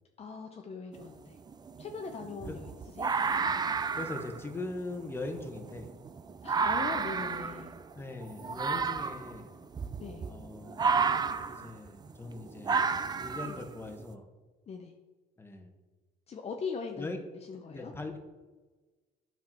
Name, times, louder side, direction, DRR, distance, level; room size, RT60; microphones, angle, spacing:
voice 1, 0.2-1.4 1.8-3.1 6.4-7.7 10.0-10.2 13.4-13.6 14.7-14.9 16.3-17.2 17.5-17.9, left 5 dB, 40° left, 3 dB, 0.7 m, -40 dB
sound 1, 0.9-1.1 1.5-14.0, right 5 dB, 25° right, 0.4 m, -32 dB
voice 2, 3.9-5.9 7.9-9.5 10.2-11.0 11.5-12.9 13.2-14.3 15.4-15.7 17.0-17.2 17.7-18.2, left 2 dB, 15° left, 4 dB, 1.1 m, -41 dB
8.7 x 5.8 x 4.5 m, 1.3 s
cardioid pair, 110°, 17 cm